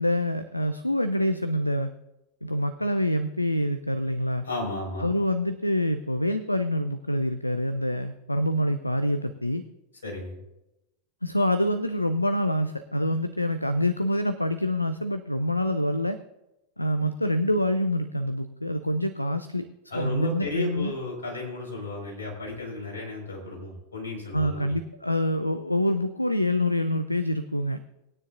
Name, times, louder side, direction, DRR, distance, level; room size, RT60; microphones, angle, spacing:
voice 1, 0.0-1.9 2.4-4.4 5.0-9.6 11.2-16.2 16.8-19.7 20.0-20.9 24.3-27.8, left 1 dB, 85° left, 11 dB, 0.5 m, -26 dB
voice 2, 4.4-5.1 10.0-10.4 19.9-24.8, left 2 dB, 70° left, -1 dB, 4.7 m, -34 dB
20.0 x 9.7 x 2.5 m, 0.91 s
figure-of-eight pair, 90°, 0 cm